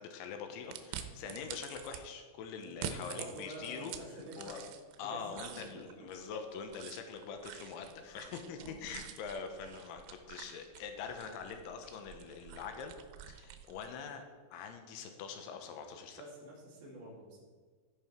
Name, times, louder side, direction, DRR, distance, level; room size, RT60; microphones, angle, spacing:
voice 1, 0.0-4.6 5.0-13.0 13.3-14.2 14.5-16.2, left 6 dB, 75° left, 5 dB, 3.1 m, -44 dB
sound 1, 0.7-2.0 2.6-5.0 5.3-14.0, right 9 dB, 90° right, 3.5 m, -47 dB
voice 2, 2.6-4.6 5.0-6.1 8.6-8.8 16.2-17.5, right 1 dB, 45° right, -6 dB, 4.2 m, -49 dB
16.5 x 5.5 x 4.5 m, 1.5 s
omnidirectional pair, 5.9 m